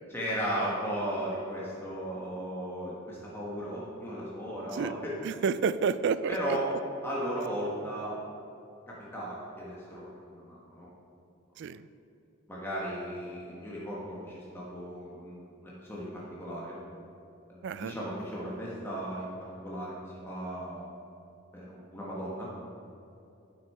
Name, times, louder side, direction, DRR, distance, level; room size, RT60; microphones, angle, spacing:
voice 1, 0.1-5.1 6.3-6.7 7.0-8.2 8.9-10.9 12.5-16.7 17.5-19.3 19.6-20.9 21.5-22.5, equal, 10° left, -6 dB, 1.3 m, -36 dB
voice 2, 5.2-6.4 11.6-11.9 17.6-17.9, right 6 dB, 60° right, 14 dB, 0.3 m, -29 dB
11.0 x 6.4 x 4.4 m, 2.8 s
head